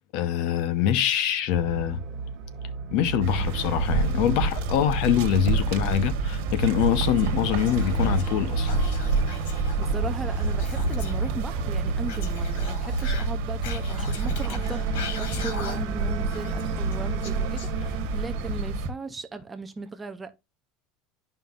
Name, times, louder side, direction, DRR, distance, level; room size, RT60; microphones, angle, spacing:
voice 1, 0.1-2.0 2.9-8.7, left 10 dB, 50° left, 0.8 m, -24 dB
sound 1, 1.5-18.5, right 5 dB, 40° right, 1.3 m, -38 dB
sound 2, 3.2-18.9, right 3 dB, 65° right, 1.5 m, -28 dB
Whispering, 6.8-8.4 8.6-11.3 12.0-16.0 16.3-18.1, left 4 dB, 80° left, 1.8 m, -37 dB
voice 2, 9.8-20.3, right 3 dB, 10° right, 0.5 m, -37 dB
11.0 x 5.5 x 2.4 m
cardioid pair, 180°, 0 cm